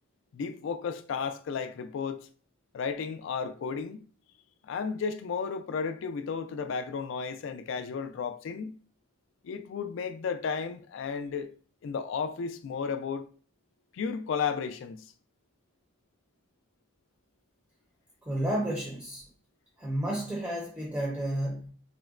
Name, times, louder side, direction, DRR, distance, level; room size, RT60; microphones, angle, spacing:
voice 1, 0.3-2.3 2.7-4.0 4.6-8.8 9.4-11.5 11.8-13.2 13.9-15.0, left 6 dB, 70° left, 0.3 m, -33 dB
voice 2, 18.2-19.2 19.8-21.7, right 1 dB, 10° right, 0.6 m, -31 dB
3.7 x 2.1 x 2.4 m
head